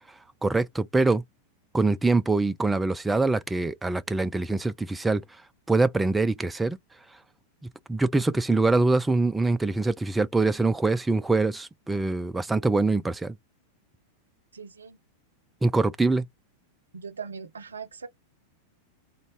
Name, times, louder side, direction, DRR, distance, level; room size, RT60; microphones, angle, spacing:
voice 1, 0.4-1.2 1.7-5.2 5.7-6.8 7.9-13.3 15.6-16.2, right 3 dB, 10° right, 0.3 m, -24 dB
voice 2, 14.5-15.0 16.9-18.1, right 6 dB, 70° right, 0.5 m, -40 dB
3.9 x 2.1 x 2.9 m
figure-of-eight pair, 90°, 0 cm